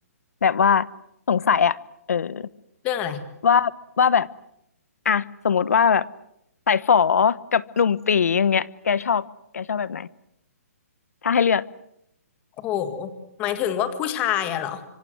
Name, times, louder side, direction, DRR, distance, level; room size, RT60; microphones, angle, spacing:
voice 1, 0.4-0.9 1.3-1.8 2.1-2.5 3.4-3.7 4.0-4.3 5.0-6.1 6.7-9.3 9.5-10.1 11.2-11.6, left 7 dB, 75° left, 19 dB, 1.1 m, -20 dB
voice 2, 2.8-3.3 12.6-13.1 13.4-14.8, left 10 dB, 15° left, 11 dB, 1.7 m, -26 dB
26.0 x 25.5 x 7.8 m, 0.78 s
hypercardioid pair, 170°, 8 cm